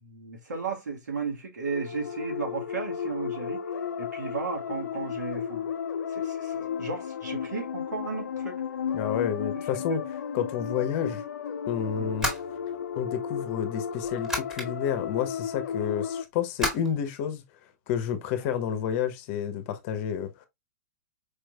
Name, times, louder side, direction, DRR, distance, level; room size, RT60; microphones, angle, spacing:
voice 1, 0.0-3.6 4.0-5.7 6.1-8.6 9.5-10.0 12.0-12.2 15.8-15.9, right 5 dB, 85° right, 1.7 m, -35 dB
sound 1, 1.7-16.2, left 7 dB, 85° left, 0.5 m, -34 dB
voice 2, 8.9-11.2 11.7-12.3 12.9-17.4 17.9-20.5, left 8 dB, 45° left, 0.8 m, -30 dB
sound 2, 11.9-13.2 13.9-14.7 16.6-16.9, left 1 dB, 5° right, 1.7 m, -31 dB
4.8 x 3.1 x 2.2 m
hypercardioid pair, 130°, 9 cm